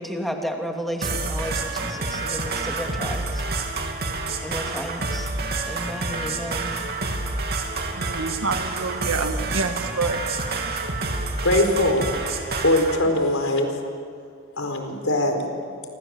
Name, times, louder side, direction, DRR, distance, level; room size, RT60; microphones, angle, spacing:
voice 1, 0.0-3.4 4.4-5.3 5.7-6.9, equal, ahead, 2 dB, 2.8 m, -32 dB
sound 1, 1.0-13.0, right 3 dB, 50° right, 2.9 m, -28 dB
voice 2, 7.9-10.2, right 4 dB, 80° right, 6 dB, 2.0 m, -27 dB
voice 3, 11.4-12.1 12.6-13.7 14.6-15.4, left 1 dB, 85° left, 5 dB, 4.5 m, -21 dB
28.0 x 26.0 x 7.9 m, 2.2 s
head